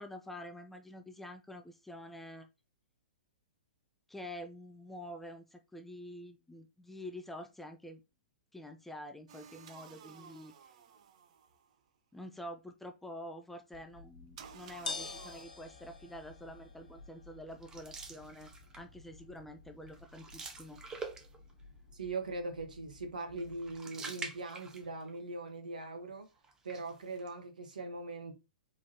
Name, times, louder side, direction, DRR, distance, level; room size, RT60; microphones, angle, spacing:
voice 1, 0.0-2.5 4.1-8.0 8.5-10.7 12.1-20.8, left 1 dB, 5° left, 0.4 m, -47 dB
sound 1, 9.3-11.7 14.4-15.4, right 7 dB, 45° right, 0.7 m, -54 dB
sound 2, 13.7-23.8, left 4 dB, 60° left, 1.1 m, -49 dB
sound 3, 17.6-19.0 19.4-19.6 19.9-21.6 23.4-25.2 25.5-25.6 26.4-27.3, right 4 dB, 15° right, 0.8 m, -46 dB
voice 2, 21.9-26.3 26.6-28.3, right 3 dB, 65° right, 1.4 m, -41 dB
4.8 x 3.8 x 2.9 m
figure-of-eight pair, 115°, 5 cm